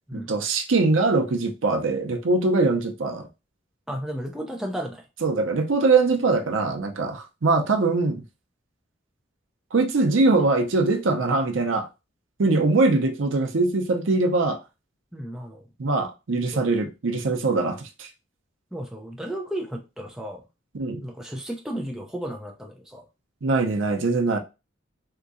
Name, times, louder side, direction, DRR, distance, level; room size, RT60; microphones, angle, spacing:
voice 1, 0.1-3.3 5.2-8.2 9.7-11.9 12.4-14.6 15.8-18.1 20.7-21.0 23.4-24.4, right 3 dB, 75° right, 0.6 m, -22 dB
voice 2, 3.9-5.0 15.1-15.7 16.5-16.7 18.7-20.4 21.0-23.1, equal, 5° right, 0.4 m, -33 dB
3.5 x 2.9 x 2.5 m
head